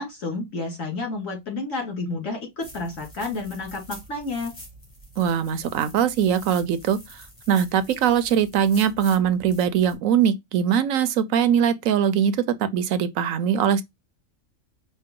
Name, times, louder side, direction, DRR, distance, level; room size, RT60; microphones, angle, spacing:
voice 1, 0.0-4.5, left 3 dB, 70° left, 2.6 m, -30 dB
sound 1, 2.6-9.9, equal, 25° left, 1.7 m, -45 dB
voice 2, 5.2-7.2 7.5-13.8, right 8 dB, 80° right, 1.0 m, -21 dB
5.2 x 2.2 x 3.6 m
omnidirectional pair, 1.4 m